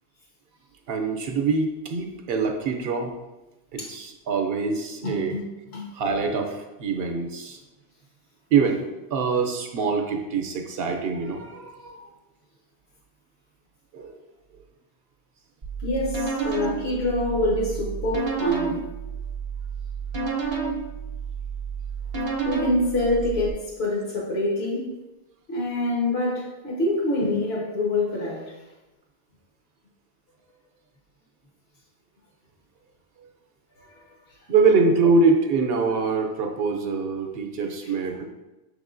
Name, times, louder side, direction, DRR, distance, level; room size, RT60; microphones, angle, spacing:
voice 1, 0.9-3.1 3.7-5.3 5.9-7.6 8.5-8.8 9.1-12.1 13.9-14.1 34.5-38.2, right 4 dB, 70° right, 4 dB, 0.8 m, -24 dB
voice 2, 5.0-5.4 5.7-5.9 15.8-18.9 22.4-24.9 25.5-28.5 33.8-34.1 37.8-37.9, left 1 dB, 75° left, -4 dB, 1.4 m, -26 dB
sound 1, 15.6-23.5, right 5 dB, 35° right, 0.5 m, -30 dB
6.0 x 3.5 x 2.5 m, 1.0 s
omnidirectional pair, 1.1 m